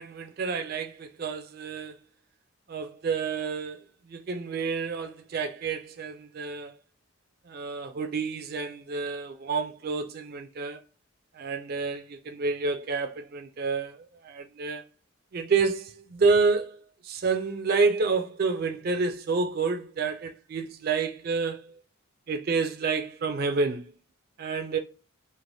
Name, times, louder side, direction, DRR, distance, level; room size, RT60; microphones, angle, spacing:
voice 1, 0.0-2.0 2.7-6.7 7.4-10.8 11.3-14.8 15.3-21.8 22.3-23.9 24.4-24.8, right 4 dB, 45° right, 0.3 m, -29 dB
3.2 x 2.1 x 2.6 m
head